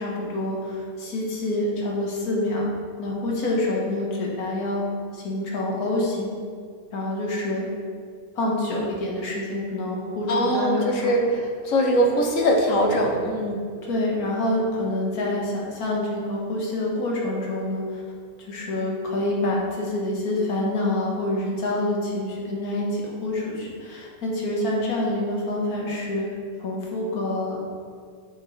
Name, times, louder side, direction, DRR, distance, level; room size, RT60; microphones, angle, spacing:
voice 1, 0.0-2.6 3.0-4.8 5.1-6.4 6.9-7.7 8.4-11.2 13.8-18.0 18.4-26.3 26.6-27.6, left 1 dB, 85° left, -3 dB, 1.9 m, -27 dB
voice 2, 10.3-13.6, equal, 65° left, 1 dB, 1.4 m, -22 dB
7.9 x 5.2 x 4.3 m, 2.1 s
omnidirectional pair, 1.5 m